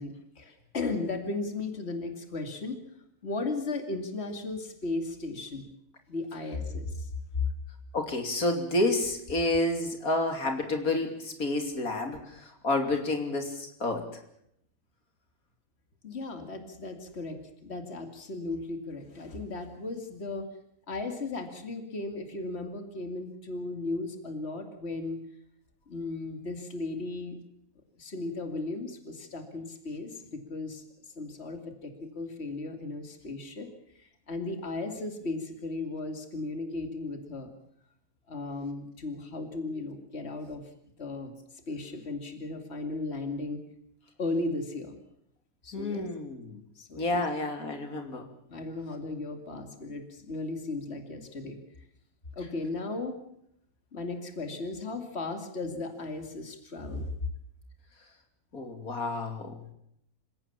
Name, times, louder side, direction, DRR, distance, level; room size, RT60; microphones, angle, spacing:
voice 1, 0.0-2.8 3.2-5.7 6.1-7.1 7.4-7.5 16.0-20.5 20.9-25.2 25.9-27.4 28.0-33.7 33.9-37.5 38.3-40.6 41.0-41.3 41.7-43.6 44.2-45.0 45.6-46.1 46.8-47.3 48.5-51.6 52.4-53.2 53.9-57.1, left 3 dB, 50° left, 6 dB, 2.8 m, -36 dB
voice 2, 7.9-14.2 45.7-46.6 47.0-48.3 58.5-59.7, left 2 dB, 90° left, 4 dB, 3.4 m, -30 dB
26.5 x 17.0 x 7.2 m, 0.74 s
omnidirectional pair, 1.5 m